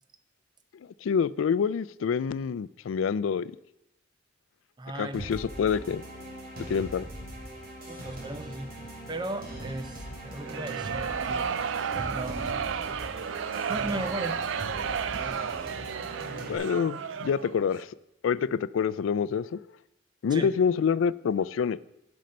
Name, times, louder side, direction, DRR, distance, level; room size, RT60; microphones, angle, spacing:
voice 1, 1.0-3.5 4.9-6.0 6.7-7.1 16.5-17.9 18.2-19.6 20.2-21.8, left 6 dB, 90° left, 17 dB, 0.3 m, -27 dB
voice 2, 4.8-5.4 7.9-8.8 9.1-12.7 13.7-14.4 20.3-20.5, right 2 dB, 25° right, 10 dB, 0.6 m, -37 dB
sound 1, 5.1-16.6, right 1 dB, 50° right, 2.4 m, -40 dB
sound 2, 10.4-17.6, right 7 dB, 75° right, 0.4 m, -32 dB
12.0 x 5.3 x 5.2 m, 0.84 s
head